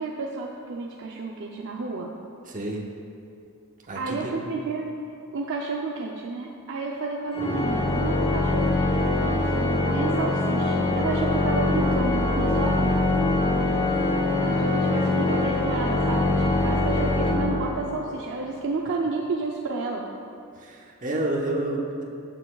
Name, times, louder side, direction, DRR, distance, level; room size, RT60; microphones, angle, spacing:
voice 1, 0.0-2.1 3.9-5.0 5.3-13.0 14.4-20.1, right 3 dB, 60° right, -1 dB, 0.6 m, -31 dB
voice 2, 2.5-2.8 3.9-4.4 20.6-22.0, right 1 dB, 40° right, -1 dB, 1.1 m, -29 dB
Organ, 7.3-18.1, left 2 dB, 30° left, 0.8 m, -23 dB
15.0 x 6.7 x 2.3 m, 2.6 s
head